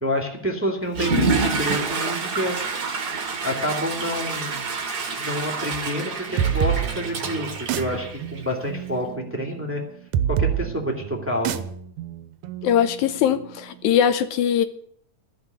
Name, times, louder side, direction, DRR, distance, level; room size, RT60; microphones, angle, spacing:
voice 1, 0.0-2.6 3.4-4.6 5.2-9.8 10.3-11.6, equal, 5° right, 0 dB, 1.8 m, -28 dB
Water / Toilet flush, 0.9-8.6, right 4 dB, 40° right, 1.8 m, -27 dB
sound 1, 6.4-13.8, right 9 dB, 90° right, 2.2 m, -28 dB
voice 2, 12.6-14.7, left 9 dB, 80° left, 10 dB, 2.2 m, -21 dB
14.5 x 5.9 x 9.3 m, 0.65 s
omnidirectional pair, 3.3 m